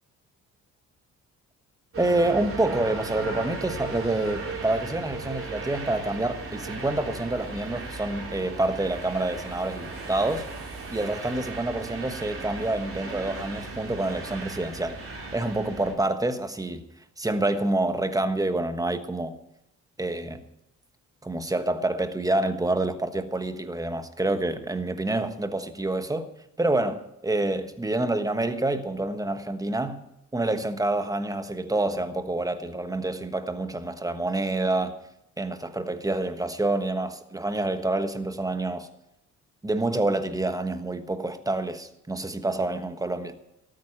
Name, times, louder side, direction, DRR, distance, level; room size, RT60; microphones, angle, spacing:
sound 1, 1.9-15.9, right 3 dB, 45° right, 3.8 m, -36 dB
voice 1, 2.0-10.5 10.9-15.0 15.3-16.8 17.2-19.4 20.0-20.4 21.2-26.3 26.6-30.0 30.3-35.0 35.4-38.9 39.6-43.3, right 2 dB, 10° right, 1.3 m, -27 dB
13.0 x 9.1 x 8.7 m
cardioid pair, 90°, 30 cm